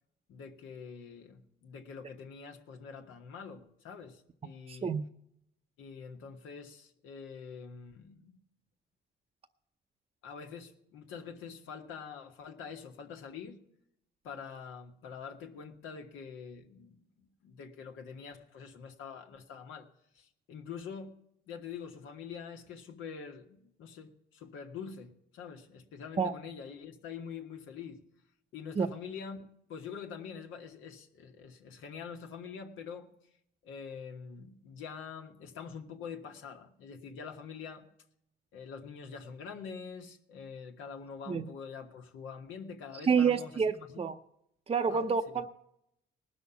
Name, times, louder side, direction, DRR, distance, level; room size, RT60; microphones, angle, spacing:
voice 1, 0.3-5.0 5.8-8.4 10.2-13.6 14.2-19.9 20.1-21.2 21.5-28.0 28.5-29.4 29.7-33.1 33.6-37.9 38.5-44.0 44.9-45.4, left 6 dB, 90° left, 1.4 m, -45 dB
voice 2, 4.7-5.0 26.2-26.3 28.8-28.9 41.3-41.4 43.1-44.1 44.7-45.5, right 6 dB, 30° right, 0.6 m, -28 dB
19.0 x 6.3 x 6.9 m
cardioid pair, 90°, 20 cm